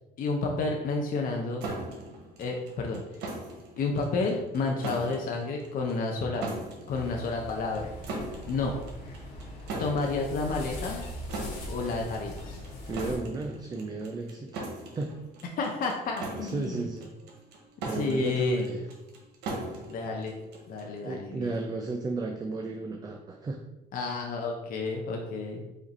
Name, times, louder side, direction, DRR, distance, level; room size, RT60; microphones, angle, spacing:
voice 1, 0.2-1.7 2.4-3.0 3.8-6.4 6.9-7.9 8.5-8.7 9.8-11.0 11.7-12.6 15.6-16.9 17.9-18.7 19.9-20.4 20.7-21.6 23.9-25.6, left 3 dB, 55° left, 1 dB, 0.7 m, -30 dB
sound 1, 1.6-21.0, right 2 dB, 85° right, 1.0 m, -40 dB
sound 2, 6.9-13.2, left 1 dB, 90° left, 1.4 m, -41 dB
voice 2, 12.8-14.6 15.0-15.1 16.4-17.1 17.8-18.8 21.0-23.6, right 3 dB, 25° right, 3 dB, 0.4 m, -34 dB
5.1 x 2.5 x 4.2 m, 0.96 s
cardioid pair, 110°, 17 cm